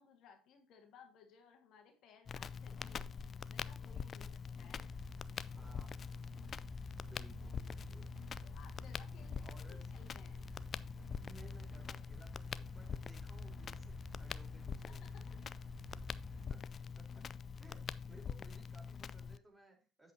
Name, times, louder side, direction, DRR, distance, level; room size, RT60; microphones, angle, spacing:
voice 1, 0.0-3.1 3.5-5.0 8.4-10.6 14.7-15.4 16.6-16.7, left 6 dB, 60° left, 4 dB, 1.8 m, -62 dB
Crackle, 2.3-19.4, left 6 dB, 45° left, 0.4 m, -45 dB
sound 1, 4.8-16.5, equal, ahead, 1.2 m, -52 dB
voice 2, 5.6-6.2 7.1-8.1 9.4-9.8 11.1-15.0 16.5-16.6 16.9-17.3 17.6-20.1, right 2 dB, 20° right, 1 dB, 4.0 m, -60 dB
8.0 x 7.8 x 2.8 m, 0.36 s
hypercardioid pair, 70°, 0 cm